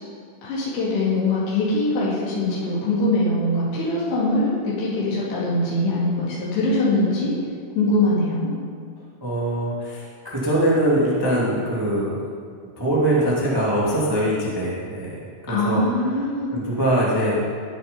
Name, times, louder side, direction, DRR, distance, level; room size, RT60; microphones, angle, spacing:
voice 1, 0.4-7.3 7.8-8.5 15.5-16.5, left 2 dB, 85° left, -8 dB, 6.3 m, -22 dB
voice 2, 9.2-12.2 12.8-15.2 15.5-15.8 16.5-17.4, right 1 dB, 15° right, -6 dB, 0.8 m, -22 dB
18.0 x 7.3 x 5.7 m, 2.1 s
omnidirectional pair, 5.7 m